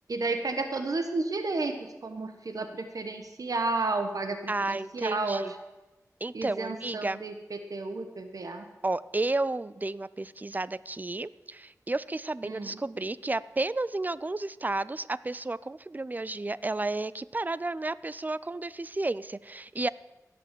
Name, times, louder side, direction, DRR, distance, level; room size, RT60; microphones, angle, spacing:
voice 1, 0.1-5.6 6.3-8.7 12.4-12.8, right 3 dB, 70° right, 7 dB, 1.2 m, -32 dB
voice 2, 4.5-5.5 6.2-7.2 8.8-19.9, right 2 dB, 30° right, 18 dB, 0.4 m, -32 dB
16.5 x 6.0 x 7.6 m, 1.0 s
wide cardioid pair, 65°, 6 cm